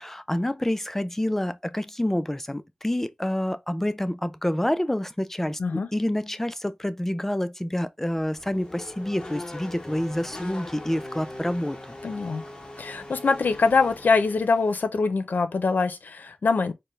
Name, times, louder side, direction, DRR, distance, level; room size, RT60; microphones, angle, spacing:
voice 1, 0.0-12.0, left 1 dB, 10° left, 0.4 m, -28 dB
Race car auto racing / Accelerating revving vroom, 8.1-14.8, left 1 dB, 25° left, 0.9 m, -40 dB
voice 2, 12.0-12.4 12.8-16.7, left 4 dB, 75° left, 0.6 m, -23 dB
4.4 x 2.1 x 3.1 m
wide cardioid pair, 85°, 3 cm